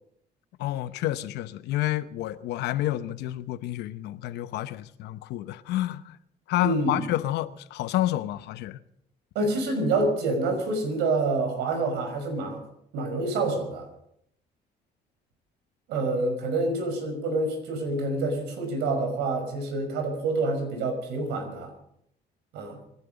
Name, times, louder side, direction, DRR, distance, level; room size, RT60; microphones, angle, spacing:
voice 1, 0.6-6.2 6.5-8.8, left 14 dB, 85° left, 0.9 m, -29 dB
voice 2, 6.6-7.0 9.3-12.6 12.9-13.9 15.9-21.7 22.5-22.8, right 2 dB, 90° right, 5.6 m, -27 dB
25.0 x 11.0 x 5.3 m
cardioid pair, 110°, 17 cm